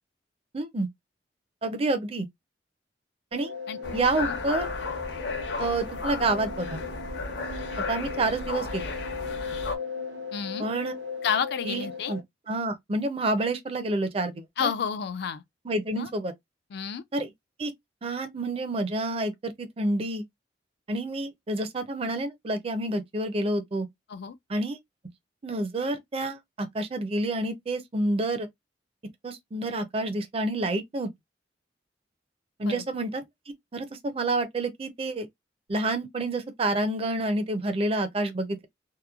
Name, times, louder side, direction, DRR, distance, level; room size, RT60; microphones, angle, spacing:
voice 1, 0.5-0.9 1.6-2.3 3.3-3.5 3.9-4.7 5.6-6.8 7.9-8.9 10.6-11.0 11.7-12.2 12.5-14.7 15.7-16.3 17.1-17.3 17.6-17.7 18.0-20.2 20.9-23.9 24.5-24.8 25.4-28.5 29.2-31.1 32.6-33.2 33.7-35.3 35.7-38.7, right 2 dB, 35° right, 0.5 m, -28 dB
sound 1, 3.3-12.2, left 5 dB, 80° right, 0.7 m, -37 dB
sound 2, 3.8-9.7, left 3 dB, 80° left, 0.8 m, -34 dB
voice 2, 10.3-10.7 11.2-12.1 14.6-15.4 15.9-16.1 16.7-17.0 24.1-24.4 32.6-32.8, left 7 dB, 65° left, 0.4 m, -30 dB
2.9 x 2.1 x 2.3 m
head